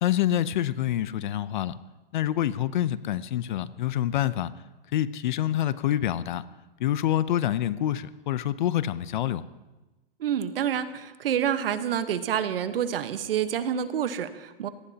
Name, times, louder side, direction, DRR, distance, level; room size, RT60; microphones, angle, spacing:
voice 1, 0.0-1.8 2.1-4.5 4.9-6.4 6.8-9.4, left 12 dB, 50° left, 16 dB, 0.7 m, -26 dB
voice 2, 10.2-14.7, right 9 dB, 70° right, 11 dB, 1.2 m, -28 dB
25.0 x 18.5 x 2.9 m, 1.1 s
hypercardioid pair, 160°, 30 cm